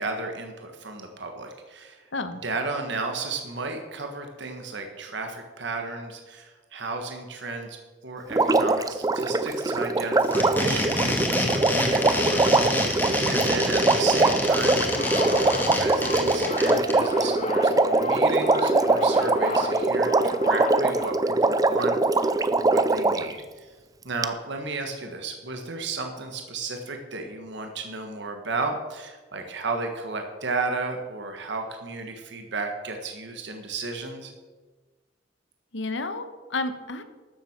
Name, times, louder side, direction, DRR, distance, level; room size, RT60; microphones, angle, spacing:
voice 1, 0.0-2.1 2.4-7.8 8.0-12.0 12.3-12.9 13.3-23.7 24.0-34.3, right 3 dB, 70° right, 4 dB, 1.5 m, -34 dB
Water, 8.3-23.3 24.2-24.3, right 3 dB, 20° right, 0.5 m, -22 dB
sound 1, 10.2-16.9, left 1 dB, 10° left, 2.0 m, -27 dB
voice 2, 13.2-13.9 35.7-37.0, left 3 dB, 70° left, 10 dB, 1.2 m, -32 dB
sound 2, 14.8-21.1, left 3 dB, 40° left, 0.6 m, -34 dB
12.5 x 7.6 x 7.4 m, 1.3 s
head